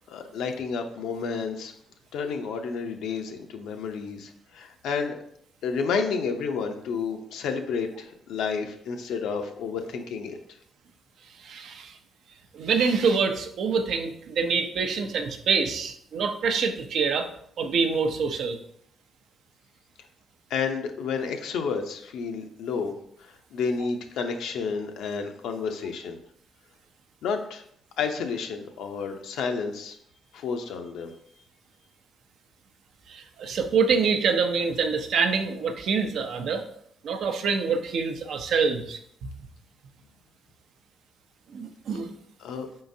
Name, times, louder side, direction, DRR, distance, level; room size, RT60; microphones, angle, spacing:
voice 1, 0.1-1.7 2.1-5.2 5.6-10.4 20.5-22.9 23.2-26.2 27.2-27.6 28.0-30.0 30.3-31.1 42.4-42.7, left 5 dB, 85° left, 5 dB, 0.5 m, -30 dB
voice 2, 11.4-12.0 12.5-17.3 17.6-18.6 33.1-36.6 37.0-39.3 41.5-42.2, right 5 dB, 70° right, 7 dB, 0.5 m, -26 dB
5.0 x 3.7 x 2.7 m, 0.69 s
cardioid pair, 90°, 0 cm